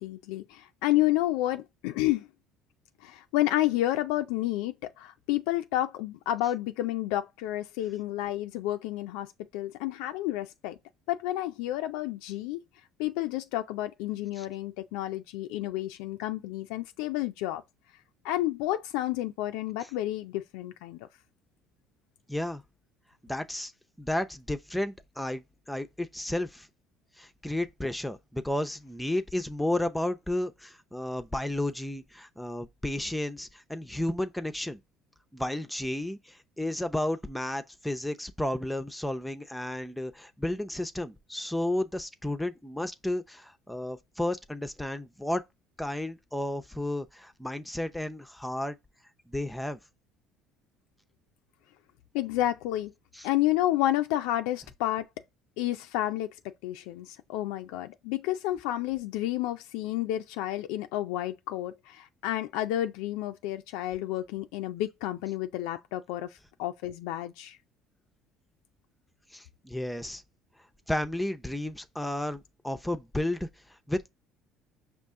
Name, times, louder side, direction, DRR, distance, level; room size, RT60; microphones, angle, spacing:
voice 1, 0.0-2.3 3.0-10.8 11.1-12.6 13.0-17.6 18.2-21.0 52.1-52.9 53.2-55.1 55.6-67.6, left 14 dB, 80° left, 0.4 m, -30 dB
voice 2, 22.3-22.6 23.2-23.7 24.0-26.7 27.2-34.8 35.3-45.4 45.8-48.8 49.3-49.8 53.1-53.3 69.3-70.2 70.9-73.5 73.9-74.0, left 1 dB, 5° left, 0.6 m, -32 dB
5.3 x 2.5 x 3.6 m
supercardioid pair, 80°, 0 cm